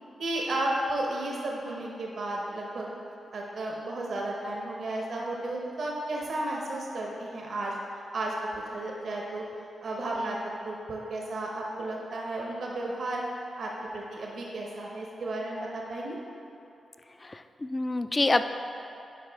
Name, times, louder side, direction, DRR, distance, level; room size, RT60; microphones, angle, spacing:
voice 1, 0.2-2.9 3.3-7.8 8.1-8.3 8.7-9.4 9.8-10.4 10.6-13.2 13.6-16.2, right 2 dB, 70° right, -2 dB, 0.9 m, -33 dB
voice 2, 17.3-18.4, left 2 dB, 25° left, 9 dB, 0.3 m, -26 dB
9.4 x 4.8 x 3.5 m, 2.9 s
cardioid pair, 75°, 0 cm